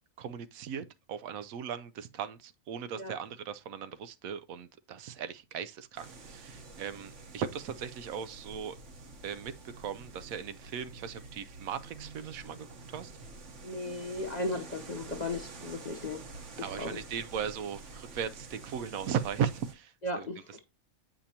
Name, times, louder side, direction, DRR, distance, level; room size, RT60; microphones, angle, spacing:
voice 1, 0.2-8.8 9.2-13.1 16.6-20.3, right 8 dB, 75° right, 1.0 m, -37 dB
sound 1, 6.0-19.7, right 3 dB, 55° right, 1.4 m, -48 dB
voice 2, 13.6-16.2 16.6-17.0 20.0-20.6, left 2 dB, 35° left, 0.8 m, -36 dB
8.6 x 5.1 x 2.8 m
omnidirectional pair, 1.5 m